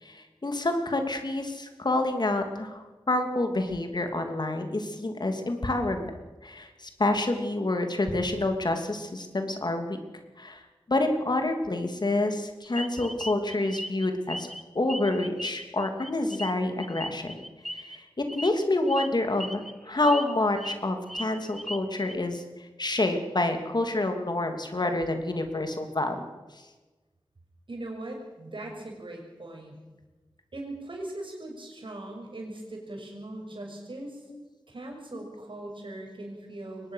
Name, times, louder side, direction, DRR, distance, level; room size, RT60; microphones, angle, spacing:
voice 1, 0.0-6.1 6.4-10.0 10.4-10.6 10.9-14.5 14.7-17.4 17.7-22.4 22.8-26.3 34.3-34.4 35.1-35.3, left 2 dB, 55° left, 5 dB, 2.9 m, -28 dB
sound 1, 12.8-14.6 14.9-18.0 18.3-18.5 18.9-19.1 19.4-19.7 20.0-20.8 21.1-22.1, equal, ahead, 1.2 m, -37 dB
voice 2, 27.7-29.8 30.5-34.3 34.7-36.9, right 1 dB, 70° right, 1 dB, 6.3 m, -40 dB
22.5 x 19.0 x 6.5 m, 1.2 s
wide cardioid pair, 65°, 9 cm